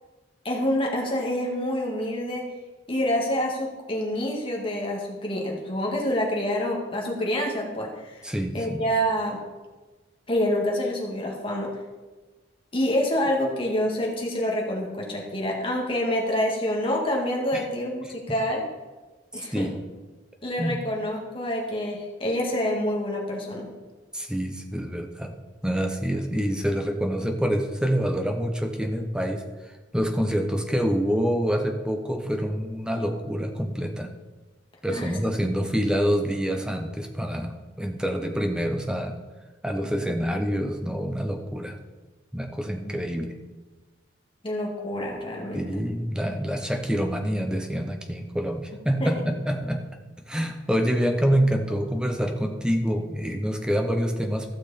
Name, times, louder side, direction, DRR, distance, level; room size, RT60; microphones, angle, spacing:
voice 1, 0.4-2.5 2.9-8.3 8.5-9.4 10.3-11.7 12.7-18.6 19.3-19.7 20.4-23.7 34.9-35.1 42.8-42.9 44.4-45.7 49.0-49.1, left 1 dB, 30° left, -1 dB, 2.0 m, -27 dB
voice 2, 8.2-8.9 17.5-17.6 18.0-18.1 19.5-19.7 20.6-20.8 24.1-25.3 25.6-34.1 34.8-39.2 39.6-41.8 42.3-43.4 45.5-49.9 50.3-54.5, equal, 5° right, 4 dB, 0.9 m, -26 dB
15.0 x 6.3 x 4.2 m, 1.3 s
head